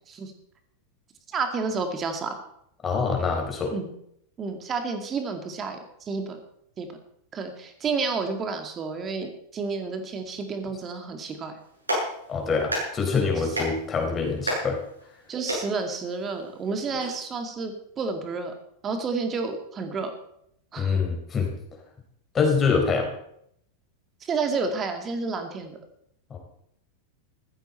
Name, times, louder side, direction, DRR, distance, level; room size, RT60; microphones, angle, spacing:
voice 1, 1.3-2.4 3.7-3.9 4.4-6.4 6.8-6.9 7.3-11.6 15.3-18.5 18.8-20.1 20.7-21.0 24.2-25.8, right 4 dB, 25° right, 6 dB, 2.2 m, -30 dB
voice 2, 2.8-3.7 12.3-14.8 20.8-21.5 22.3-23.2 26.3-26.4, left 5 dB, 20° left, 2 dB, 4.0 m, -25 dB
Clapping, 11.6-17.0, equal, 85° right, 7.7 m, -34 dB
15.5 x 14.5 x 4.4 m, 0.73 s
figure-of-eight pair, 90°, 0 cm